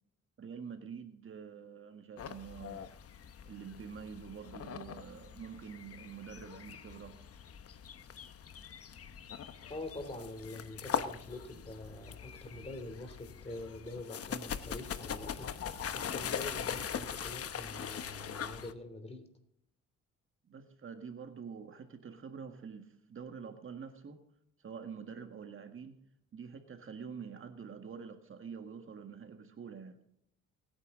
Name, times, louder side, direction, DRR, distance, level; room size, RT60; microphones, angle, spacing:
voice 1, 0.4-2.9 3.4-7.2 20.5-24.2 24.6-26.0 26.3-30.0, right 6 dB, 45° right, 6 dB, 1.7 m, -46 dB
sound 1, 2.2-18.7, left 8 dB, 50° left, 1.1 m, -41 dB
voice 2, 9.7-15.5 15.9-19.3, left 1 dB, 20° left, 8 dB, 3.2 m, -45 dB
23.5 x 9.9 x 3.8 m, 0.73 s
cardioid pair, 90°, 30 cm